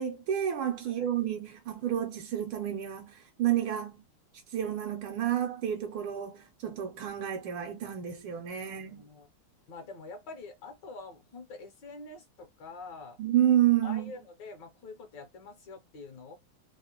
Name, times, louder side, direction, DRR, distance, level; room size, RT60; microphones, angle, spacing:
voice 1, 0.0-4.0 4.5-9.1 13.2-14.1, right 11 dB, 75° right, 1.4 m, -30 dB
voice 2, 8.6-9.3 9.7-13.2 13.8-16.3, left 3 dB, 65° left, 1.2 m, -46 dB
3.5 x 2.1 x 2.8 m
omnidirectional pair, 2.4 m